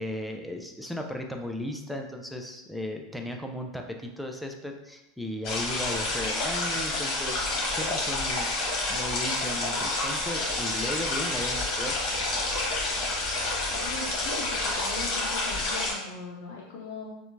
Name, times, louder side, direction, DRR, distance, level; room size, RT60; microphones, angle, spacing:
voice 1, 0.0-11.9, left 1 dB, ahead, 2 dB, 0.5 m, -36 dB
sound 1, 5.4-15.9, left 2 dB, 55° left, 1.3 m, -29 dB
voice 2, 13.7-17.1, left 4 dB, 75° left, -3 dB, 0.5 m, -40 dB
4.3 x 2.4 x 2.7 m, 0.91 s
hypercardioid pair, 90°, 0 cm